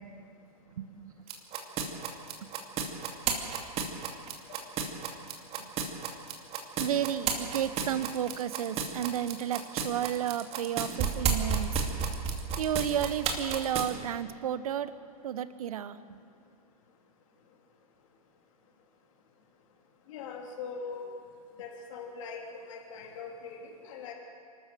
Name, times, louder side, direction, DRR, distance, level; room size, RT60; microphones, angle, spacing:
voice 1, 0.7-1.3 2.4-2.5 5.6-5.7 6.8-11.7 12.6-14.9 15.2-16.2, right 10 dB, 65° right, 14 dB, 1.1 m, -32 dB
sound 1, 1.3-13.9, right 6 dB, 30° right, 2.5 m, -31 dB
voice 2, 20.1-21.1 21.6-24.1, left 5 dB, 55° left, 1 dB, 3.3 m, -41 dB
27.0 x 13.0 x 7.6 m, 2.4 s
hypercardioid pair, 115°, 20 cm